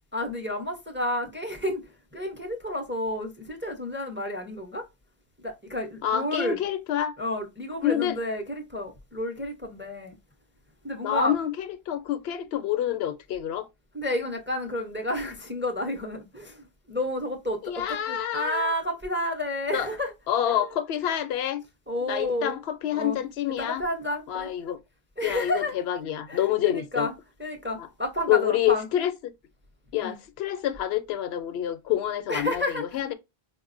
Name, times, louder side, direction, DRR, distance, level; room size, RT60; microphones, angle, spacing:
voice 1, 0.1-1.8 2.1-4.8 5.4-6.6 7.2-10.1 10.8-11.3 13.9-20.1 20.5-20.6 21.9-22.5 22.9-23.2 23.6-24.5 25.2-25.8 26.3-27.1 27.4-28.9 30.0-30.1 32.3-32.8, left 1 dB, 15° right, 0.5 m, -30 dB
voice 2, 6.0-7.1 7.8-8.2 11.0-13.7 17.6-18.7 19.7-19.9 20.3-21.6 22.1-23.8 24.3-24.8 25.2-27.1 28.3-29.3 29.9-33.1, left 11 dB, 80° left, 0.8 m, -27 dB
4.7 x 2.1 x 2.4 m
omnidirectional pair, 1.0 m